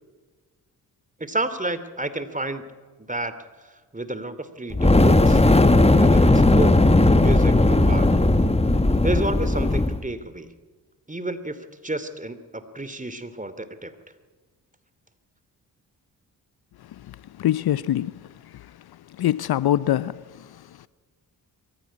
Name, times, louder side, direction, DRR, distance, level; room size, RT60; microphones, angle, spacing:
voice 1, 1.2-2.7 3.0-3.3 3.6-5.4 5.9-6.9 7.1-8.2 9.0-10.5 11.1-11.6 11.8-13.9, right 2 dB, 20° right, 2.7 m, -31 dB
Fire, 4.7-10.0, left 2 dB, 15° left, 1.6 m, -17 dB
voice 2, 16.9-18.8 19.1-20.9, left 12 dB, 60° left, 0.7 m, -26 dB
22.0 x 15.0 x 9.9 m
supercardioid pair, 40°, 42 cm